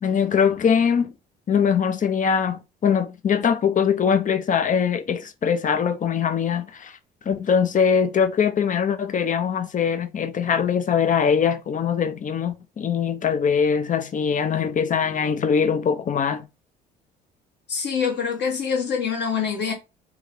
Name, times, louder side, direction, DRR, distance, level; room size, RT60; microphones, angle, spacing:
voice 1, 0.0-1.1 1.5-7.0 7.3-16.4, left 7 dB, 40° left, 0.6 m, -22 dB
voice 2, 17.7-19.7, left 6 dB, 55° left, 1.5 m, -25 dB
3.1 x 2.3 x 3.7 m
hypercardioid pair, 55°, 21 cm